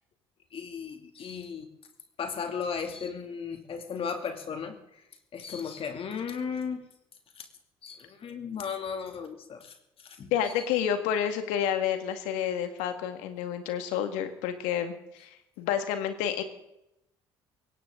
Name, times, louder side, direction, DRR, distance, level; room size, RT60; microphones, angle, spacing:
voice 1, 0.5-1.7 2.2-5.0 5.3-6.8 7.4-7.5 7.8-9.8 10.0-10.3, left 6 dB, 50° left, 6 dB, 2.6 m, -35 dB
voice 2, 10.3-14.9 15.2-15.3 15.6-16.4, left 9 dB, 80° left, 8 dB, 2.0 m, -29 dB
21.0 x 17.5 x 3.9 m, 0.83 s
hypercardioid pair, 65°, 12 cm